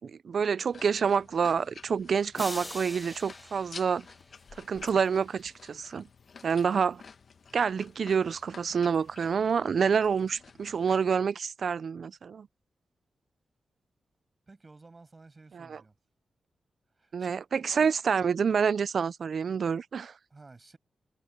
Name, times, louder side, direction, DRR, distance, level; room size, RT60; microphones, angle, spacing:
voice 1, 0.0-4.0 4.6-6.1 6.4-7.0 7.5-12.5 15.5-15.8 17.1-20.1, right 6 dB, 55° right, 0.4 m, -28 dB
sound 1, 0.7-11.1, left 5 dB, 50° left, 1.1 m, -51 dB
sound 2, 2.3-4.7, left 1 dB, 10° left, 1.1 m, -43 dB
sound 3, 3.4-9.3, left 7 dB, 70° left, 4.4 m, -65 dB
voice 2, 14.5-15.9 17.0-17.9 20.3-20.8, right 3 dB, 25° right, 7.0 m, -53 dB
wide cardioid pair, 130°, 0 cm